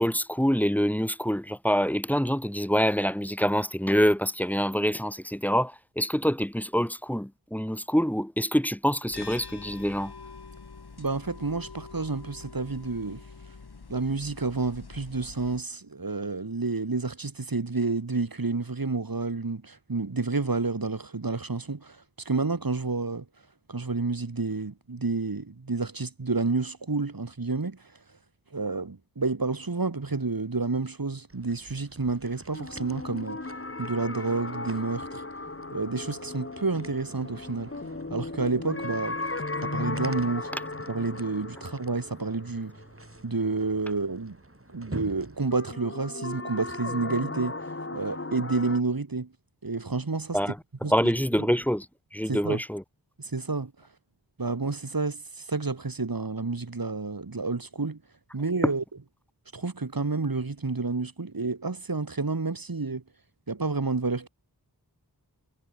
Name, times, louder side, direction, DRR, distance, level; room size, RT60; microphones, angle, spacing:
voice 1, 0.0-10.1 50.3-50.6 50.9-51.9 52.1-52.8, equal, 5° left, 1.6 m, -26 dB
sound 1, 9.1-15.6, left 4 dB, 70° left, 3.6 m, -45 dB
voice 2, 11.0-13.2 13.9-23.3 23.7-27.8 28.5-35.2 35.7-37.7 38.1-39.2 39.6-40.5 40.9-42.8 43.2-44.4 44.7-49.3 49.6-50.5 50.8-50.9 51.4-51.5 52.3-52.6 53.2-53.7 54.4-58.0 58.3-58.8 59.5-63.0 63.5-64.3, right 3 dB, 60° right, 4.5 m, -30 dB
sound 2, 31.3-45.5, right 2 dB, 35° right, 7.6 m, -47 dB
sound 3, 32.5-43.4 45.5-48.8, left 2 dB, 35° left, 2.4 m, -36 dB
wide cardioid pair, 45°, 39 cm